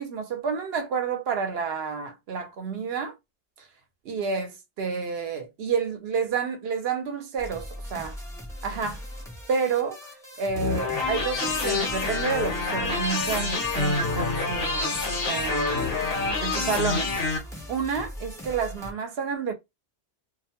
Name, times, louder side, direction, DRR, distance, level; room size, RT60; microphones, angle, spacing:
voice 1, 0.0-3.2 4.0-8.2 8.6-9.0 9.5-10.1 10.4-15.0 15.3-16.0 16.4-19.5, right 5 dB, 65° right, 0.8 m, -30 dB
sound 1, 7.4-18.9, equal, 5° left, 0.5 m, -40 dB
sound 2, 10.5-17.4, left 4 dB, 60° left, 0.9 m, -27 dB
2.3 x 2.1 x 2.8 m
omnidirectional pair, 1.2 m